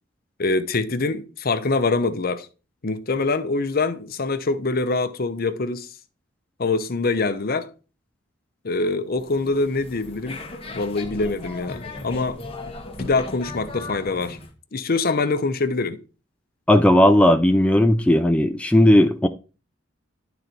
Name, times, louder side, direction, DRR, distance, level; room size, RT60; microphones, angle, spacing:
voice 1, 0.4-2.5 2.8-5.9 6.6-7.7 8.6-10.4 10.7-12.4 13.0-14.4 14.7-16.0, left 3 dB, 50° left, 0.7 m, -24 dB
sound 1, 9.1-14.5, left 2 dB, 30° left, 1.1 m, -37 dB
voice 2, 16.7-19.3, left 1 dB, 5° left, 0.4 m, -16 dB
11.5 x 4.0 x 4.4 m
head